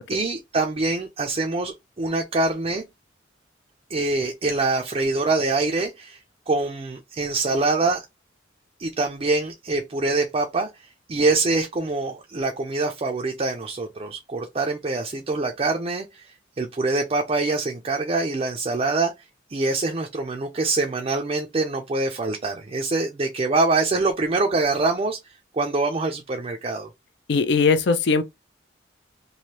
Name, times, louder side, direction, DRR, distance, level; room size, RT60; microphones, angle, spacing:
voice 1, 0.0-2.8 3.9-6.2 6.5-8.0 8.8-10.7 11.1-16.3 16.6-19.1 19.5-25.2 25.5-26.9, right 3 dB, 30° right, 0.4 m, -24 dB
voice 2, 27.3-28.2, left 4 dB, 60° left, 0.4 m, -19 dB
3.1 x 2.6 x 2.8 m
head